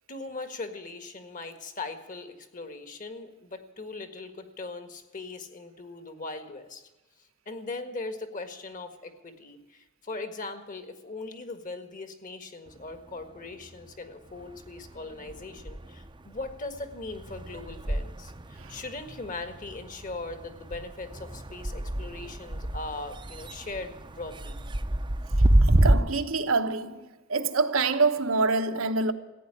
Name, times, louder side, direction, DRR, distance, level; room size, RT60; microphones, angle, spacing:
voice 1, 0.1-6.9 7.5-24.6, left 3 dB, 40° left, 1.7 m, -39 dB
sound 1, 12.7-13.9 14.2-25.9, right 1 dB, 25° right, 0.7 m, -29 dB
voice 2, 25.6-29.1, right 3 dB, 80° right, 1.2 m, -26 dB
15.0 x 9.5 x 9.9 m
head